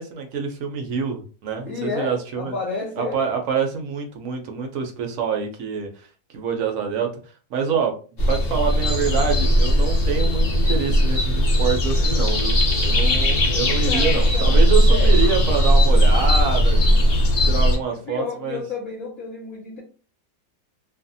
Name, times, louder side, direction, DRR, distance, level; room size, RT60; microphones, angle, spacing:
voice 1, 0.0-2.5 3.0-6.1 6.3-7.1 7.5-7.9 8.3-12.6 12.8-16.8 17.4-18.6, right 6 dB, 65° right, 0.8 m, -26 dB
voice 2, 1.7-3.2 13.9-15.2 15.9-16.6 17.7-19.8, left 4 dB, 65° left, 0.9 m, -32 dB
sound 1, 8.2-17.8, equal, 85° left, 0.5 m, -18 dB
2.6 x 2.5 x 2.6 m
omnidirectional pair, 1.9 m